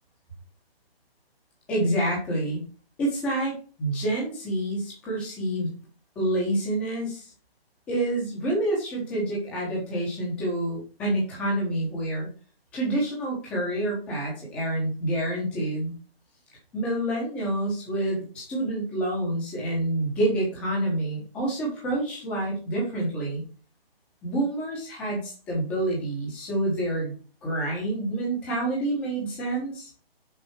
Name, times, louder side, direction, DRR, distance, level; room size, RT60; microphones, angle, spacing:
voice 1, 1.7-2.6 3.0-5.7 6.1-7.3 7.9-12.3 12.7-15.9 16.7-23.4 24.2-27.1 27.4-29.9, right 1 dB, 5° left, -3 dB, 1.0 m, -28 dB
6.5 x 5.4 x 4.6 m, 0.37 s
hypercardioid pair, 175°, 30 cm